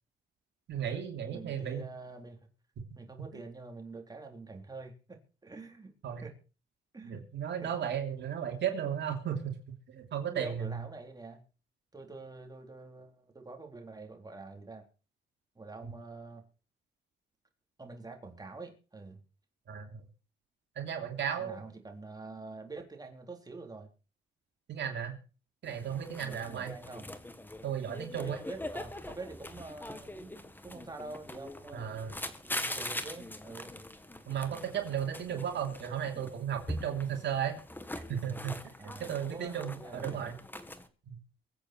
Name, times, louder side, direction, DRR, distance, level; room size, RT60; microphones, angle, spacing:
voice 1, 0.7-1.8 6.0-6.3 7.0-9.6 9.9-10.8 15.8-15.9 19.7-20.0 20.7-21.6 24.7-25.1 25.6-26.7 27.6-28.4 31.7-32.2 34.3-37.6 38.1-40.4 41.1-41.2, right 8 dB, 65° right, 3 dB, 3.1 m, -35 dB
voice 2, 1.3-2.4 3.0-5.9 6.2-6.3 6.9-7.2 7.6-7.7 10.3-11.4 11.9-14.8 15.6-16.4 17.8-19.2 21.4-23.9 26.2-27.1 28.1-31.9 32.4-33.7 38.8-40.3, right 3 dB, 20° right, 3 dB, 3.8 m, -46 dB
sound 1, 25.6-40.9, left 1 dB, 10° left, 1.9 m, -43 dB
23.0 x 8.3 x 4.5 m, 0.36 s
cardioid pair, 90°, 20 cm